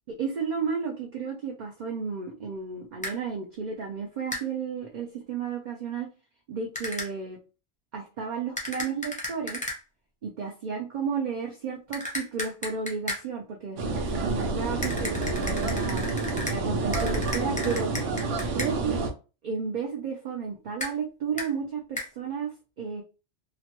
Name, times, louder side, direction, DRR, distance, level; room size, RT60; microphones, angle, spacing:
voice 1, 0.2-6.1 6.5-7.4 7.9-9.6 10.2-16.1 16.5-17.9 18.5-19.0 19.4-23.0, right 6 dB, 55° right, 0 dB, 0.5 m, -33 dB
sound 1, 3.0-3.2 4.3-4.5 6.7-7.1 8.6-9.8 11.9-13.2 14.8-16.6 16.9-18.7 20.8-20.9 21.4-21.5 22.0-22.1, left 1 dB, 10° left, 0.6 m, -34 dB
sound 2, 13.8-19.1, right 3 dB, 80° right, 1.0 m, -29 dB
2.9 x 2.1 x 2.9 m, 0.32 s
omnidirectional pair, 1.2 m